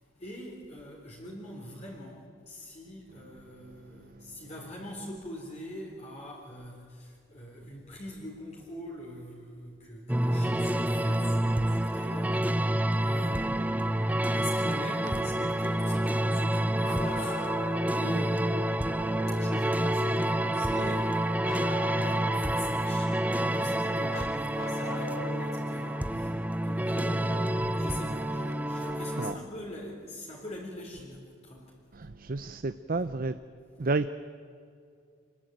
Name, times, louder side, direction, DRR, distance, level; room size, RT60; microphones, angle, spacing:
voice 1, 0.2-18.7 19.3-31.7, left 1 dB, 35° left, 3.8 m, -43 dB
sound 1, 10.1-29.3, right 1 dB, 5° right, 0.6 m, -28 dB
Bark, 16.8-17.9 21.4-22.5 24.1-25.6 27.3-27.4 29.3-29.4 30.5-30.6, left 3 dB, 80° left, 3.1 m, -40 dB
voice 2, 31.9-33.3 33.8-34.1, right 3 dB, 45° right, 0.6 m, -30 dB
27.0 x 21.0 x 9.2 m
head